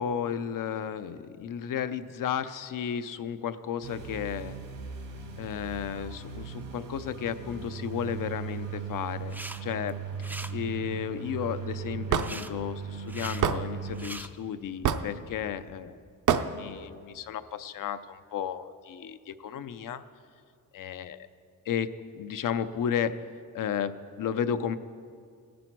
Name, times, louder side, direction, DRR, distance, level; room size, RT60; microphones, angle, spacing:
voice 1, 0.0-4.6 5.4-16.0 16.5-20.0 20.7-21.3 21.7-21.9 22.1-23.2 23.5-24.8, left 8 dB, 75° left, 12 dB, 0.6 m, -33 dB
sound 1, 3.8-14.1, right 6 dB, 85° right, 1.7 m, -38 dB
sound 2, 9.2-9.6 9.9-10.5 12.2-12.5 13.0-13.4 13.9-14.3, right 1 dB, 5° right, 0.3 m, -41 dB
Hammer / Wood, 12.1-12.3 13.4-13.6 14.8-15.1 16.3-16.5, right 8 dB, 70° right, 0.6 m, -24 dB
18.0 x 10.5 x 4.6 m, 2.3 s
wide cardioid pair, 150°, 32 cm